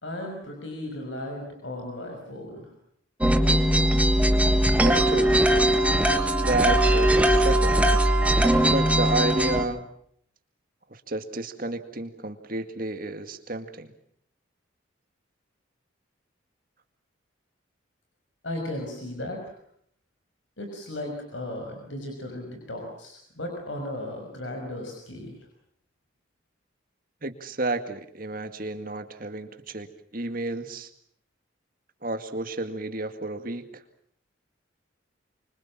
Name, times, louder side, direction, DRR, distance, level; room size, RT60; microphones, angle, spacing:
voice 1, 0.0-2.7 18.4-19.6 20.6-25.4, left 1 dB, 70° left, 3 dB, 5.9 m, -36 dB
sound 1, 3.2-9.6, right 1 dB, 5° right, 1.5 m, -20 dB
voice 2, 4.8-5.3 6.4-7.7 8.6-9.9 10.9-13.9 27.2-30.9 32.0-33.8, right 2 dB, 45° right, 8 dB, 2.1 m, -31 dB
26.0 x 25.5 x 7.5 m, 0.68 s
head